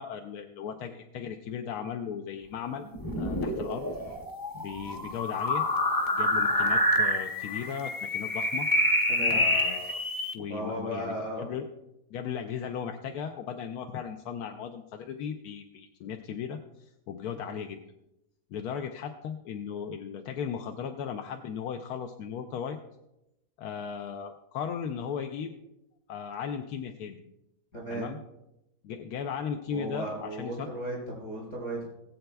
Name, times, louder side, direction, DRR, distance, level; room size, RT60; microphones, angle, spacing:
voice 1, 0.0-2.9 3.2-3.9 4.5-5.6 6.1-8.7 9.3-10.0 10.3-11.7 12.1-16.6 17.1-17.8 18.5-22.8 23.6-25.5 26.1-27.2 27.9-28.2 28.8-30.7, left 7 dB, 90° left, 5 dB, 1.2 m, -36 dB
sound 1, 2.9-10.3, left 1 dB, 25° left, 0.5 m, -27 dB
voice 2, 9.1-9.5 10.4-11.4 27.7-28.1 29.7-31.9, right 1 dB, 65° left, -3 dB, 5.0 m, -35 dB
19.0 x 7.8 x 2.3 m, 0.89 s
omnidirectional pair, 1.6 m